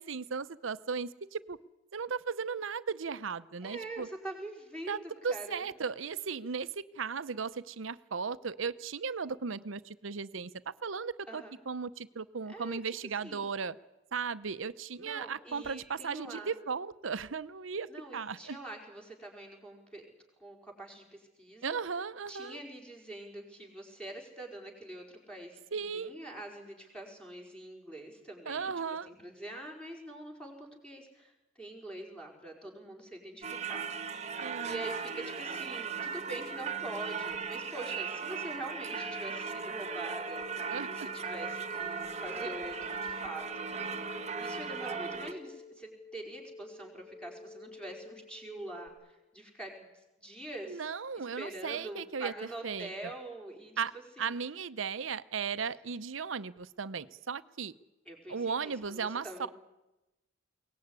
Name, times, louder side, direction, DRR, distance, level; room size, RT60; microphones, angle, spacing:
voice 1, 0.0-1.6 1.9-4.1 4.9-13.8 14.1-18.6 21.6-22.6 25.7-26.2 28.5-29.1 34.4-34.8 40.7-41.1 50.7-52.3 52.6-53.1 53.8-53.9 54.2-57.7 58.3-59.5, right 5 dB, 80° right, 15 dB, 0.8 m, -36 dB
voice 2, 3.6-5.7 11.3-11.6 12.5-12.8 13.2-13.5 15.0-16.5 17.9-20.1 20.4-21.8 22.3-28.7 29.1-33.8 34.1-44.0 44.4-49.9 50.2-50.8 51.2-53.7 54.2-54.3 58.0-59.5, right 1 dB, 5° left, 1 dB, 5.0 m, -45 dB
Singing / Church bell, 33.4-45.3, right 5 dB, 35° right, 1.2 m, -37 dB
sound 1, 38.9-48.9, left 3 dB, 35° left, 1.9 m, -51 dB
22.0 x 18.5 x 9.6 m, 0.99 s
head